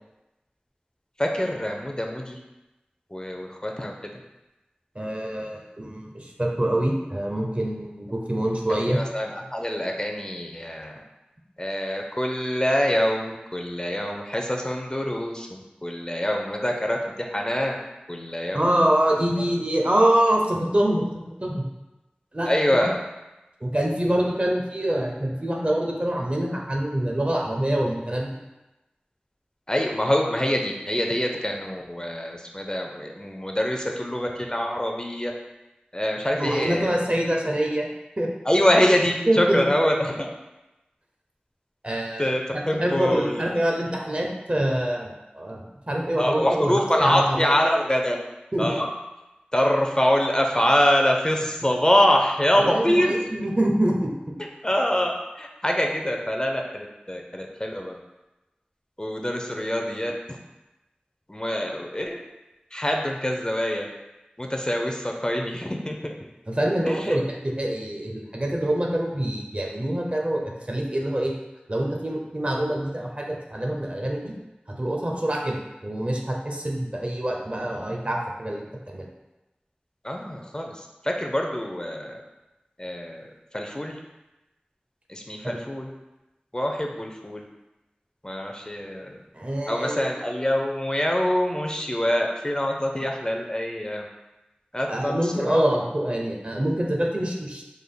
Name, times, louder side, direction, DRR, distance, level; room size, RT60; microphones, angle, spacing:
voice 1, 1.2-2.4 3.1-4.1 8.9-10.9 11.6-17.8 18.1-18.7 19.4-19.5 22.5-23.0 29.7-35.3 35.9-37.0 38.5-40.3 42.2-43.5 46.2-48.2 48.6-48.9 49.5-53.5 54.6-55.1 55.4-58.0 59.0-60.4 61.3-62.2 62.7-63.9 64.4-66.1 66.9-67.2 80.0-82.2 82.8-83.3 83.5-84.0 85.1-85.9 86.5-87.4 88.2-89.1 89.7-94.1 94.7-95.6, equal, 25° left, 2 dB, 0.4 m, -25 dB
voice 2, 5.0-9.0 18.5-21.6 22.3-22.9 23.6-28.3 36.3-37.9 38.2-38.3 39.3-39.6 41.8-46.7 47.0-47.5 48.5-48.7 52.7-54.3 66.5-71.3 71.7-74.3 74.7-79.1 85.4-85.6 89.3-90.1 94.9-97.6, right 1 dB, 40° right, 0 dB, 0.5 m, -25 dB
3.4 x 2.1 x 3.7 m, 1.0 s
wide cardioid pair, 45°, 3 cm